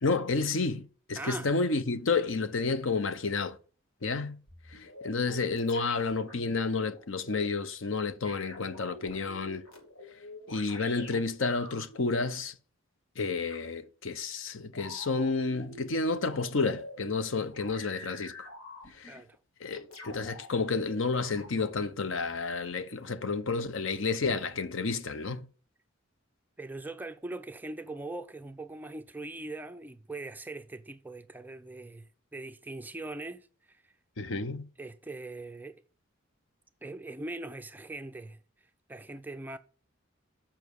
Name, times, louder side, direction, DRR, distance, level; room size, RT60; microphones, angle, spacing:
voice 1, 0.0-3.6 4.0-4.4 4.7-9.6 10.5-12.5 13.2-18.5 18.9-19.2 19.6-25.5 34.2-34.7, left 4 dB, 65° left, 0.7 m, -30 dB
voice 2, 1.2-1.5 19.1-19.4 26.6-33.8 34.8-35.8 36.8-38.4 38.9-39.6, right 2 dB, 10° right, 0.4 m, -41 dB
sound 1, 4.5-7.4 8.2-12.2 13.5-13.7 14.7-17.0 17.5-19.2 19.7-20.5 20.8-21.7, left 2 dB, 85° left, 2.3 m, -47 dB
7.2 x 5.8 x 6.3 m
head